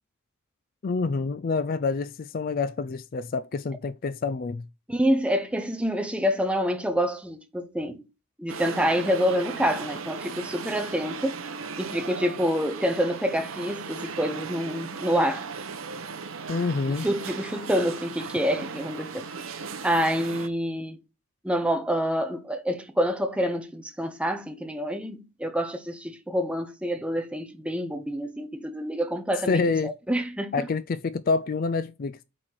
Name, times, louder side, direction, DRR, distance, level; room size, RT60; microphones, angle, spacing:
voice 1, 0.8-4.7 16.5-17.1 29.5-29.9 30.5-32.2, left 4 dB, 40° left, 0.4 m, -27 dB
voice 2, 4.9-8.0 8.4-11.4 11.8-15.5 17.0-19.3 19.8-21.0 21.4-30.7, equal, 5° right, 0.9 m, -27 dB
sound 1, 8.5-20.5, right 5 dB, 70° right, 0.9 m, -37 dB
8.7 x 4.2 x 4.7 m
head